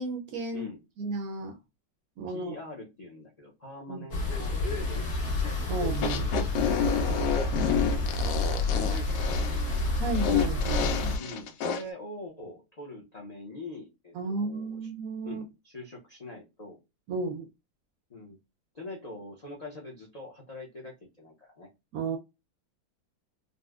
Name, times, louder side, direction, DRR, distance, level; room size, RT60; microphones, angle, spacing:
voice 1, 0.0-0.7 1.0-1.6 2.2-2.6 3.9-4.1 5.7-6.3 10.0-11.2 14.1-15.4 17.1-17.5 21.9-22.2, right 3 dB, 70° right, 0.9 m, -33 dB
voice 2, 2.3-5.5 8.7-9.2 9.5-9.9 11.2-14.9 15.2-16.8 18.1-18.4 18.7-21.7, left 2 dB, 65° left, 0.4 m, -43 dB
sound 1, 4.1-11.2, left 2 dB, 50° left, 1.5 m, -29 dB
sound 2, 5.9-11.8, left 8 dB, 85° left, 1.3 m, -29 dB
3.9 x 2.1 x 2.3 m
omnidirectional pair, 1.9 m